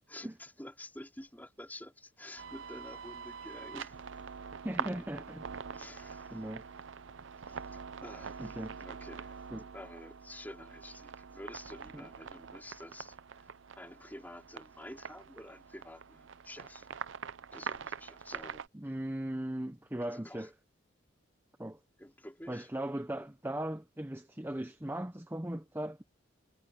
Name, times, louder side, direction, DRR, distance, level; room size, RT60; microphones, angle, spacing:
voice 1, 0.1-4.0 4.8-4.9 5.7-6.9 7.5-9.4 9.7-13.5 13.8-16.9 17.5-18.7 20.1-20.5 22.0-22.7 23.2-23.3, left 1 dB, 10° left, 4.2 m, -49 dB
sound 1, 2.4-18.7, right 6 dB, 70° right, 0.6 m, -44 dB
voice 2, 4.6-5.4 6.3-6.6 8.4-8.8 9.5-9.7 11.9-12.1 18.7-20.5 21.6-21.8 22.5-26.0, right 1 dB, 10° right, 0.7 m, -38 dB
head